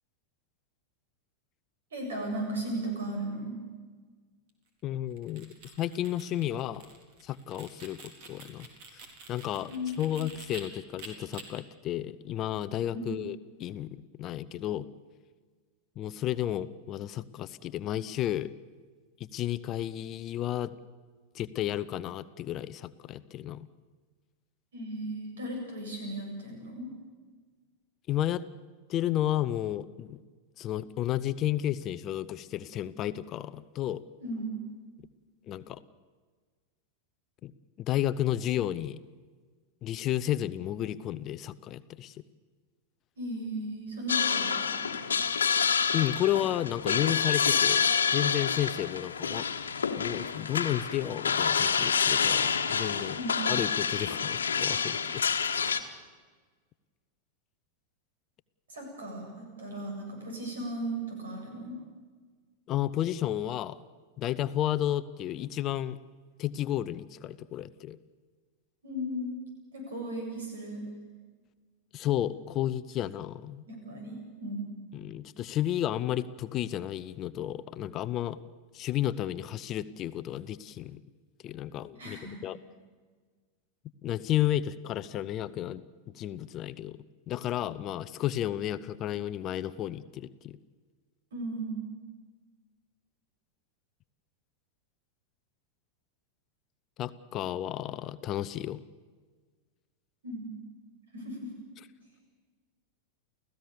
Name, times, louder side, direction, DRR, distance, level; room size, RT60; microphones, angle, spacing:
voice 1, 1.9-3.5 9.7-9.9 10.2-10.3 12.9-13.1 24.7-26.9 34.2-34.5 43.2-45.0 53.1-53.5 58.7-61.8 68.8-69.4 69.7-70.8 73.7-74.7 82.0-82.4 91.3-91.8 100.2-100.5 101.1-101.5, right 1 dB, 65° right, 2 dB, 7.9 m, -36 dB
voice 2, 4.8-5.5 5.8-6.8 7.2-8.0 8.3-8.7 8.9-9.7 10.0-14.9 16.0-18.5 19.2-20.7 21.3-23.7 28.1-28.5 28.9-30.2 30.6-34.0 35.5-35.8 37.4-37.5 37.8-39.0 39.8-42.2 45.9-47.9 48.1-49.5 50.0-53.2 53.5-55.2 55.6-55.8 62.7-63.8 64.2-66.0 66.4-68.0 71.9-73.6 74.9-78.4 78.7-81.0 81.4-82.6 84.0-85.8 86.1-87.0 87.3-90.6 97.0-98.8, left 12 dB, 35° left, 15 dB, 0.7 m, -32 dB
sound 1, 5.1-10.6 11.0-11.4, right 4 dB, 45° right, 4.0 m, -48 dB
sound 2, 44.1-55.8, left 6 dB, 70° left, 1.4 m, -28 dB
29.5 x 16.0 x 7.0 m, 1.5 s
figure-of-eight pair, 90°, 0 cm